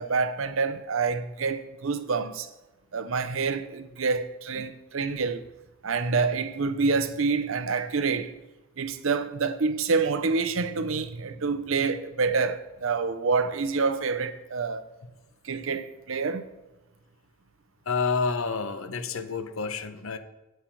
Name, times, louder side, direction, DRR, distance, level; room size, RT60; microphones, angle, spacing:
voice 1, 0.0-2.5 2.9-5.5 5.8-8.3 8.8-14.8 15.4-16.5, right 4 dB, 75° right, 0.7 m, -27 dB
voice 2, 17.9-20.2, left 4 dB, 85° left, 0.8 m, -29 dB
9.1 x 7.8 x 4.6 m
head